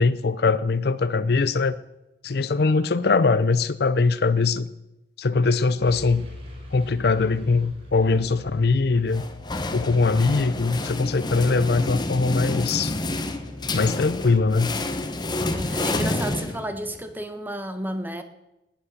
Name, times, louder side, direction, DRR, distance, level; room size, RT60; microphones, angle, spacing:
voice 1, 0.0-1.8 2.2-4.7 5.2-6.3 6.7-9.2 9.7-12.9 13.7-14.7, left 4 dB, 60° left, 0.5 m, -21 dB
sound 1, 5.8-15.5, left 1 dB, 35° right, 4.4 m, -43 dB
sound 2, 9.1-17.0, left 2 dB, 25° left, 1.0 m, -29 dB
voice 2, 15.4-18.2, right 1 dB, 10° right, 1.2 m, -32 dB
19.0 x 8.4 x 6.6 m
head